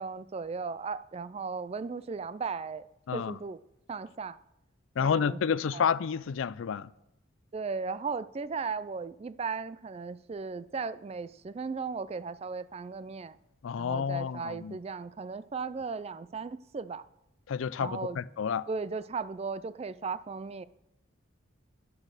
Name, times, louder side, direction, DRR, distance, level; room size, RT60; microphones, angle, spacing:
voice 1, 0.0-2.9 3.1-3.6 3.9-4.4 5.0-5.9 7.5-13.4 13.8-17.0 17.8-18.2 18.7-20.6, right 4 dB, 30° right, 0.3 m, -36 dB
voice 2, 5.0-6.9 13.6-14.8 17.5-18.7, left 6 dB, 70° left, 0.4 m, -30 dB
11.0 x 8.1 x 6.5 m
head